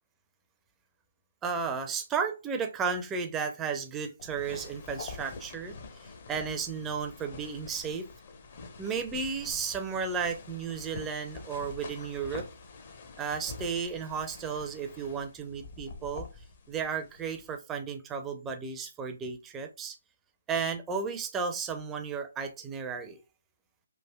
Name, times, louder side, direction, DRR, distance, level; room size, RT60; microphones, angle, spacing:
voice 1, 1.4-8.1 8.8-12.5 13.2-16.3 16.7-20.0 20.5-23.2, right 5 dB, 10° right, 6 dB, 0.4 m, -34 dB
sound 1, 4.2-17.6, left 4 dB, 40° left, 0.6 m, -46 dB
3.3 x 2.4 x 2.2 m, 0.30 s
figure-of-eight pair, 140°, 0 cm